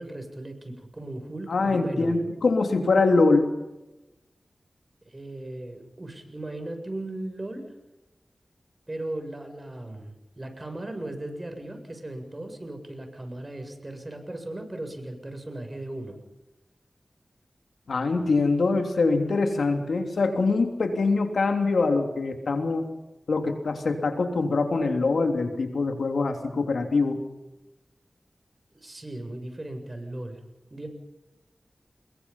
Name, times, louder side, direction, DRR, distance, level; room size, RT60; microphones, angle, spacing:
voice 1, 0.0-2.2 5.0-7.6 8.9-16.1 28.7-30.4 30.7-30.9, right 1 dB, 35° right, 5 dB, 7.7 m, -37 dB
voice 2, 1.5-3.5 17.9-22.9 23.3-27.2, left 3 dB, 85° left, 5 dB, 3.1 m, -24 dB
29.0 x 22.5 x 5.7 m, 1.0 s
cardioid pair, 45°, 0 cm